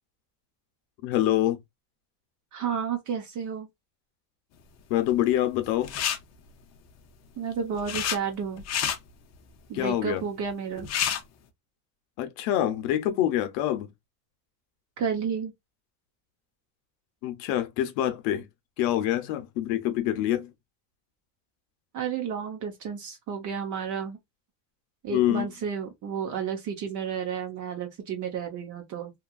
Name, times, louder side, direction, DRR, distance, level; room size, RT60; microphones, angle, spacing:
voice 1, 1.0-1.6 4.9-5.9 9.7-10.2 12.2-13.9 17.2-18.4 18.8-20.5 25.1-25.5, left 12 dB, 85° left, 0.7 m, -26 dB
voice 2, 2.5-3.7 7.4-8.6 9.7-10.9 15.0-15.5 21.9-24.2 25.0-29.1, right 7 dB, 45° right, 0.8 m, -31 dB
sound 1, 5.8-6.2 7.4-8.2 8.6-9.0 10.5-10.6 10.8-11.2, left 9 dB, 40° left, 0.5 m, -28 dB
2.9 x 2.4 x 2.3 m
cardioid pair, 150°, 44 cm